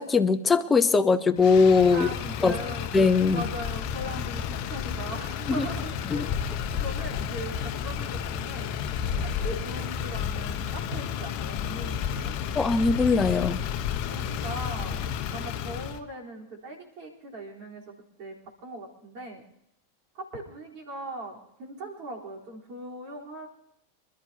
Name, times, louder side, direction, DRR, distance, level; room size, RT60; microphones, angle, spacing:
voice 1, 0.0-2.1 2.4-2.6 2.9-3.4 5.5-5.7 6.1-6.3 12.5-13.6, left 4 dB, 15° left, 11 dB, 0.9 m, -21 dB
Motor vehicle (road), 1.4-16.0, left 8 dB, 40° left, 1.0 m, -31 dB
voice 2, 1.9-2.9 3.2-6.5 6.8-8.8 9.2-12.4 14.1-15.0 15.3-17.8 18.2-18.4 18.6-19.4 20.1-23.5, right 1 dB, 45° right, -1 dB, 3.8 m, -39 dB
26.5 x 12.5 x 2.9 m, 0.78 s
figure-of-eight pair, 90°, 0 cm